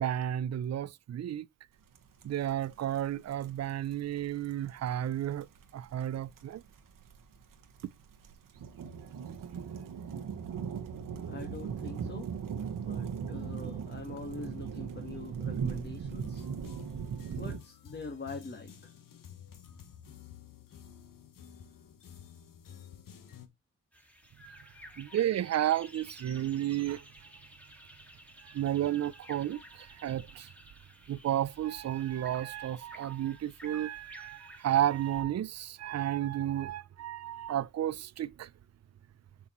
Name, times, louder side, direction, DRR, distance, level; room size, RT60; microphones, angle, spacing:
voice 1, 0.0-1.5 2.2-5.5 5.7-6.6 25.0-27.0 28.4-30.5 31.1-38.5, right 11 dB, 55° right, 0.5 m, -32 dB
sound 1, 1.9-2.0 2.2-17.6, right 7 dB, 85° right, 1.2 m, -38 dB
voice 2, 11.2-12.3 12.8-16.5 17.4-18.9, left 3 dB, 35° left, 1.5 m, -44 dB
sound 2, 16.2-23.5, left 8 dB, 80° left, 1.2 m, -51 dB
sound 3, 23.9-35.2, equal, 5° left, 1.9 m, -53 dB
7.0 x 6.2 x 3.0 m
cardioid pair, 70°, 32 cm